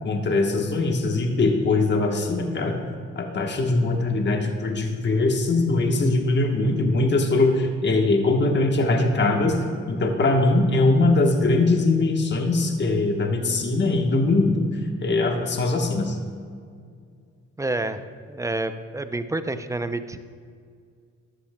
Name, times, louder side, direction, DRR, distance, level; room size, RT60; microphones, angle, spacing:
voice 1, 0.0-2.8 3.2-9.6 9.9-14.7 15.0-16.1, left 2 dB, 35° left, 3 dB, 1.2 m, -21 dB
voice 2, 17.6-18.0 18.3-20.2, right 2 dB, 10° right, 10 dB, 0.4 m, -28 dB
13.0 x 10.5 x 2.2 m, 2.1 s
cardioid pair, 90°, 30 cm